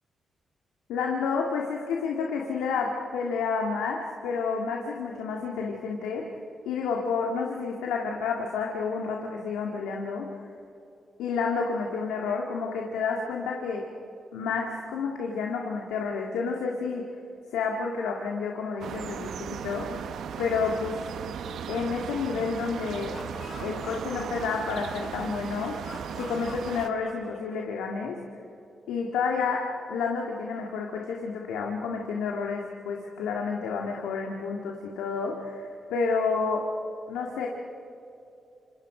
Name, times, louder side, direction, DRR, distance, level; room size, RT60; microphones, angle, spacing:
voice 1, 0.9-6.2 6.7-10.3 11.2-13.8 14.3-17.0 17.5-20.1 20.4-21.0 21.7-23.1 23.6-25.7 26.2-28.2 28.9-29.6 29.9-36.7 37.1-37.5, left 5 dB, 85° left, 0 dB, 2.1 m, -30 dB
sound 1, 18.8-26.9, right 8 dB, 75° right, 0.9 m, -37 dB
Laughter, 22.8-25.3 25.8-27.8, left 4 dB, 55° left, 8.0 m, -45 dB
30.0 x 27.5 x 5.1 m, 2.7 s
supercardioid pair, 45°, 0 cm